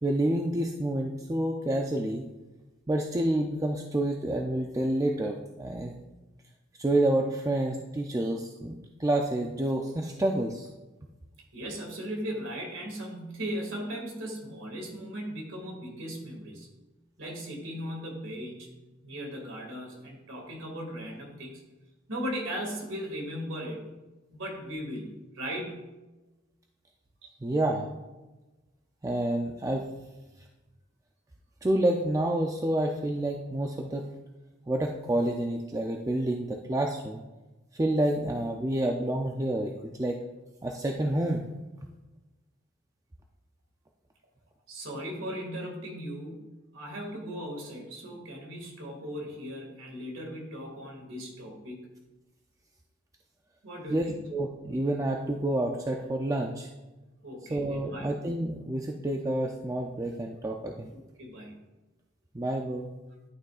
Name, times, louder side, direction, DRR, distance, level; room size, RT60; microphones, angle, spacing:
voice 1, 0.0-2.3 2.9-5.9 6.8-10.7 27.4-27.9 29.0-29.9 31.6-34.1 34.7-37.2 37.7-40.2 40.6-41.4 53.9-56.7 57.5-60.9 62.3-62.9, right 1 dB, 15° right, 2 dB, 0.4 m, -28 dB
voice 2, 11.5-16.7 17.2-18.7 19.0-21.6 22.1-23.8 24.3-25.1 25.3-25.9 44.7-51.9 53.6-54.2 57.2-58.1 60.9-61.6, equal, 75° right, 1 dB, 2.1 m, -38 dB
11.0 x 6.3 x 2.4 m, 1.1 s
head